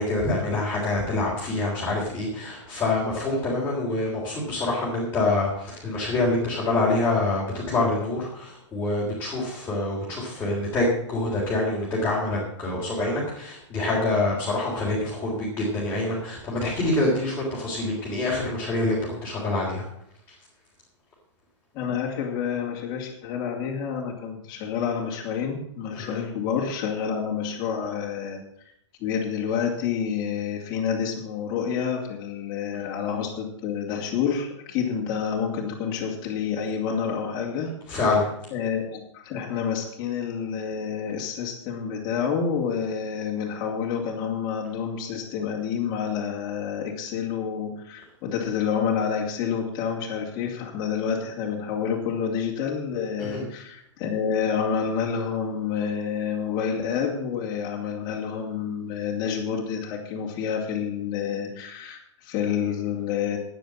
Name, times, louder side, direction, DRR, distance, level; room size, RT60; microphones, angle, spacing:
voice 1, 0.0-19.9 25.9-26.2 37.9-38.2 53.2-53.4, left 2 dB, 10° left, -6 dB, 3.7 m, -26 dB
voice 2, 21.7-28.4 29.0-38.0 38.5-63.4, left 7 dB, 30° left, -3 dB, 2.7 m, -28 dB
10.5 x 9.3 x 7.5 m, 0.73 s
hypercardioid pair, 155°, 15 cm